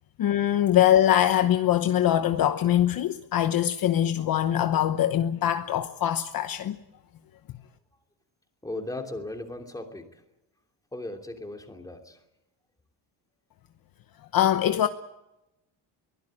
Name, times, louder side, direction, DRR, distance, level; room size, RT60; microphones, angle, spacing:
voice 1, 0.2-6.8 14.3-14.9, left 11 dB, 45° left, 1.0 m, -23 dB
voice 2, 8.6-10.2 10.9-12.2, left 2 dB, 5° left, 2.9 m, -37 dB
23.5 x 16.5 x 8.8 m
cardioid pair, 160°, 47 cm